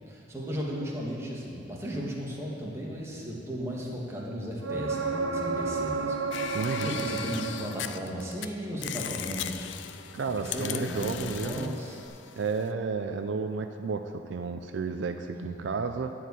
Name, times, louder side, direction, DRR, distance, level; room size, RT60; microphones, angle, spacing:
voice 1, 0.1-9.7 10.4-12.0 15.3-15.8, equal, 15° right, -4 dB, 1.5 m, -35 dB
sound 1, 4.6-8.4 12.1-12.2, right 4 dB, 90° right, 0.8 m, -32 dB
sound 2, 6.3-8.5 8.8-12.7, left 9 dB, 70° left, 0.4 m, -38 dB
voice 2, 6.5-7.0 10.1-11.7 12.4-16.1, right 4 dB, 70° right, 7 dB, 0.4 m, -32 dB
11.0 x 4.7 x 8.3 m, 2.7 s
head